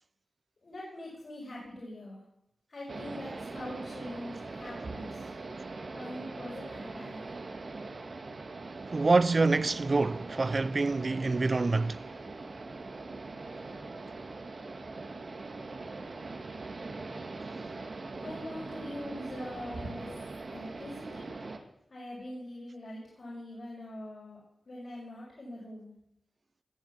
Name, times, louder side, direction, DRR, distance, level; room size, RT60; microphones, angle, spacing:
voice 1, 0.6-2.2 2.7-5.3 5.9-7.3 18.2-20.1 20.5-21.3 21.9-24.4 24.7-25.9, left 1 dB, 60° left, 6.0 m, -43 dB
sound 1, 2.9-21.6, right 3 dB, 65° right, 1.9 m, -41 dB
voice 2, 8.9-12.0, right 3 dB, 50° right, 0.5 m, -26 dB
19.5 x 7.3 x 7.4 m
cardioid pair, 50°, 0 cm